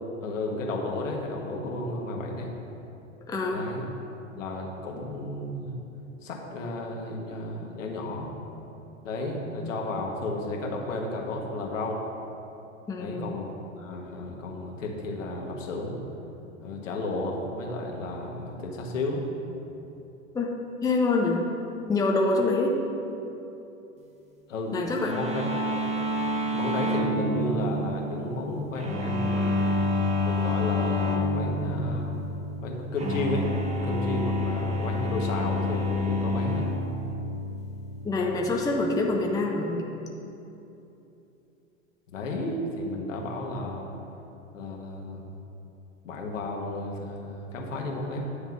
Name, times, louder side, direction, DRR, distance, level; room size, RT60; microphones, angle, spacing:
voice 1, 0.2-2.5 3.5-3.9 4.3-5.8 6.2-8.3 9.0-12.0 13.0-13.5 13.8-16.0 16.6-19.3 24.5-25.5 26.5-29.8 30.2-32.1 32.6-33.5 33.8-36.7 42.1-43.9 44.5-45.3 46.0-48.2, left 2 dB, 75° left, 0 dB, 1.5 m, -33 dB
voice 2, 3.3-3.6 12.9-13.3 20.3-20.5 20.8-21.4 21.9-22.8 24.7-25.1 38.0-39.8, left 3 dB, 10° left, 0 dB, 0.7 m, -25 dB
sound 1, 25.0-39.5, left 1 dB, 15° right, 1.0 m, -29 dB
9.8 x 3.5 x 7.1 m, 2.9 s
hypercardioid pair, 95°, 39 cm